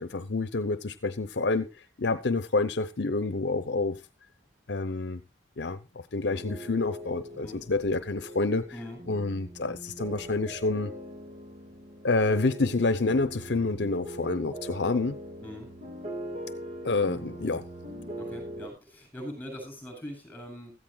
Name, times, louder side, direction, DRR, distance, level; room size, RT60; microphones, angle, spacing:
voice 1, 0.0-1.7 2.0-4.0 4.7-5.2 5.6-8.6 9.1-10.9 12.0-15.2 16.8-17.6, left 3 dB, 70° left, 0.8 m, -28 dB
sound 1, 6.3-18.7, equal, 40° right, 1.8 m, -41 dB
voice 2, 7.3-7.6 8.7-9.0 15.4-15.7 18.1-20.7, equal, 10° left, 7.8 m, -42 dB
16.5 x 14.0 x 2.3 m
head